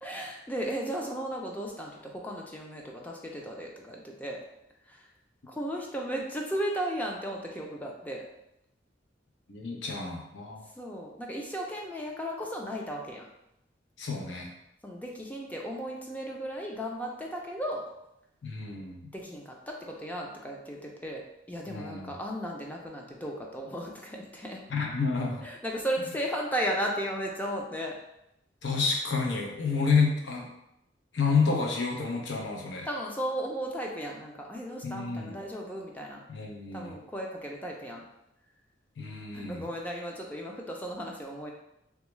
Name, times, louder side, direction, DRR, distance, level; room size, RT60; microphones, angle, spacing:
voice 1, 0.0-4.4 4.9-5.1 5.5-8.2 10.8-13.3 14.8-17.9 19.1-21.2 21.5-24.6 25.4-28.0 32.8-36.2 36.7-38.0 39.3-41.5, equal, 10° left, -1 dB, 0.4 m, -35 dB
voice 2, 9.5-10.7 14.0-14.5 18.4-19.1 21.7-22.1 24.7-25.4 28.6-30.5 31.1-32.9 34.8-35.3 36.3-36.9 39.0-39.6, left 4 dB, 85° left, 0 dB, 0.6 m, -29 dB
3.3 x 2.3 x 3.0 m, 0.83 s
head